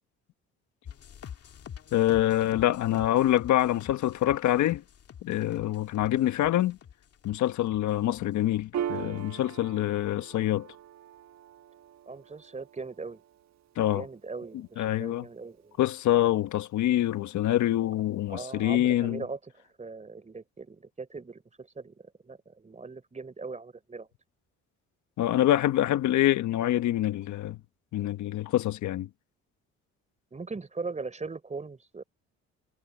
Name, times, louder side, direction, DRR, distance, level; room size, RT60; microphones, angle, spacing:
sound 1, 0.9-7.8 8.1-8.6 9.0-9.4, left 8 dB, 55° left, 2.4 m, -47 dB
voice 1, 1.9-4.8 5.2-6.8 7.2-10.7 13.8-14.0 14.8-15.3 15.8-19.2 25.2-27.6 27.9-29.1, left 13 dB, 75° left, 1.3 m, -25 dB
Piano, 8.7-15.7, right 10 dB, 65° right, 1.3 m, -41 dB
voice 2, 12.1-13.2 13.9-15.8 18.3-19.4 19.8-21.9 22.2-24.1 30.3-32.0, right 4 dB, 25° right, 4.2 m, -40 dB
cardioid pair, 95°, 30 cm